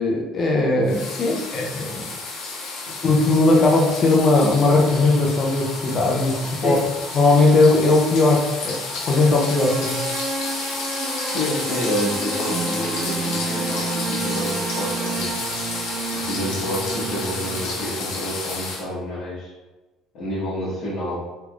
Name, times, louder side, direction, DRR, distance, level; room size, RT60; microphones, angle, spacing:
voice 1, 0.0-2.1 3.0-6.8 7.1-8.8 9.1-10.0, left 2 dB, 30° left, 0 dB, 0.6 m, -18 dB
sound 1, 0.8-18.8, left 3 dB, 70° left, 0.8 m, -31 dB
voice 2, 1.2-1.6 6.4-6.9 11.3-15.3 16.1-19.5 20.1-21.2, left 1 dB, 55° left, -11 dB, 1.1 m, -29 dB
sound 2, 4.9-17.9, right 3 dB, 30° right, 0.4 m, -31 dB
3.4 x 3.2 x 2.4 m, 1.1 s
cardioid pair, 165°, 0 cm